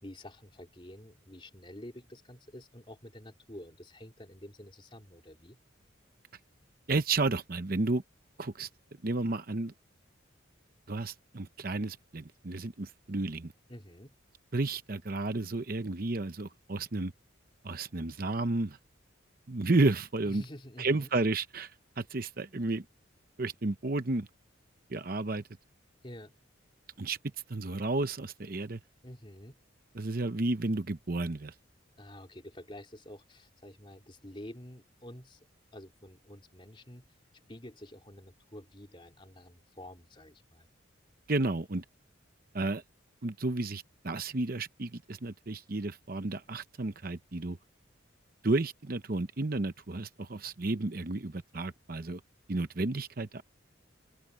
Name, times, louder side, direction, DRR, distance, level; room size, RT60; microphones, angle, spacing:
voice 1, 0.0-5.6 13.7-14.1 20.2-21.1 26.0-26.3 29.0-29.6 32.0-35.4 35.7-37.1 37.5-40.7, left 1 dB, 25° left, 3.3 m, -49 dB
voice 2, 6.9-8.0 8.4-8.7 9.0-9.7 10.9-13.5 14.5-17.1 17.6-18.8 19.5-20.4 20.8-22.8 23.4-24.3 24.9-25.4 27.0-27.2 27.5-28.8 29.9-31.5 41.3-41.8 42.5-42.8 43.2-47.6 48.4-52.2 52.5-53.4, right 2 dB, 45° right, 0.8 m, -32 dB
open air
head